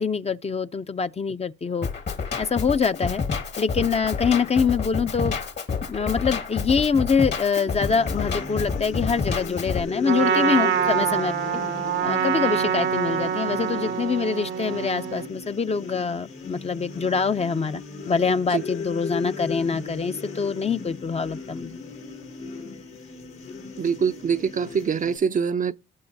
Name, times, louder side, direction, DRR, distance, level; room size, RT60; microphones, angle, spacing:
voice 1, 0.0-1.9 2.4-3.2 3.6-5.4 5.9-11.4 12.0-17.8 18.1-21.8, left 5 dB, 30° left, 0.6 m, -24 dB
Drum kit, 1.8-9.8, left 5 dB, 60° left, 1.8 m, -29 dB
sound 1, 7.7-25.2, left 5 dB, 80° left, 2.6 m, -37 dB
Trumpet, 10.0-15.3, right 8 dB, 75° right, 0.9 m, -25 dB
voice 2, 23.8-25.7, right 6 dB, 40° right, 0.5 m, -24 dB
18.5 x 6.2 x 2.6 m
supercardioid pair, 60°, 20 cm